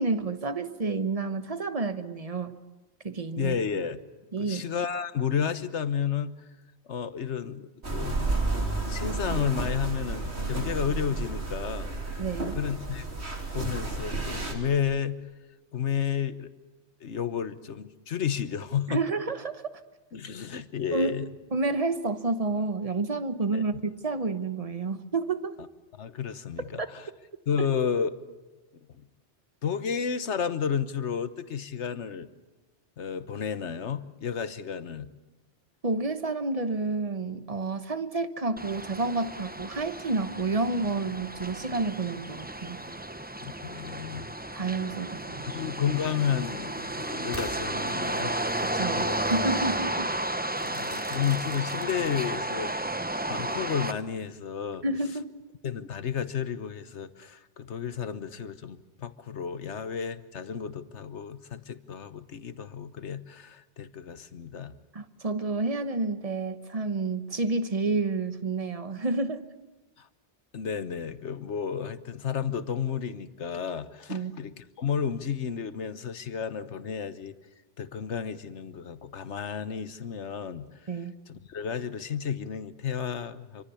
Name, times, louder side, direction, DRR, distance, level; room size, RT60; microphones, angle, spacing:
voice 1, 0.0-2.5 3.0-3.6 4.3-4.6 12.2-12.5 18.9-19.6 20.9-21.1 21.5-25.5 26.8-26.9 35.8-42.8 44.5-45.5 48.6-50.1 54.8-55.4 64.9-69.4 74.1-74.3 80.9-81.1, right 3 dB, 35° right, 10 dB, 1.1 m, -29 dB
voice 2, 3.4-4.0 4.4-6.3 6.9-8.3 8.6-11.9 12.5-13.0 13.5-15.2 15.7-16.5 17.0-19.0 20.1-21.3 23.5-23.6 26.0-27.1 27.5-28.1 29.6-32.3 33.0-35.1 43.4-44.3 45.4-48.4 48.9-49.2 50.6-52.7 53.3-54.8 55.6-64.8 70.0-70.1 70.5-77.3 77.8-80.7 81.3-83.6, left 7 dB, 80° left, 12 dB, 1.4 m, -32 dB
sound 1, 7.8-14.5, right 2 dB, 70° right, 3.4 m, -31 dB
sound 2, 38.6-53.9, right 1 dB, 10° right, 0.7 m, -33 dB
Crackle / Fireworks, 47.3-48.5 49.3-49.5 50.5-52.5, left 1 dB, 15° left, 2.9 m, -43 dB
27.0 x 25.0 x 7.0 m, 1.1 s
omnidirectional pair, 1.2 m